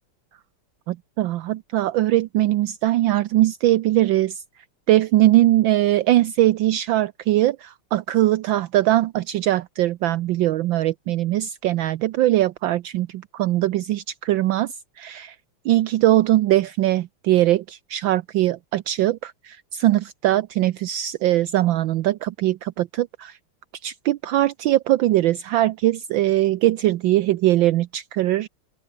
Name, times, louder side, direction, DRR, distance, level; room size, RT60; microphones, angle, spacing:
voice 1, 0.9-4.4 4.9-15.4 15.6-23.4 23.8-28.5, right 15 dB, 75° right, 1.3 m, -21 dB
open air
omnidirectional pair, 2.4 m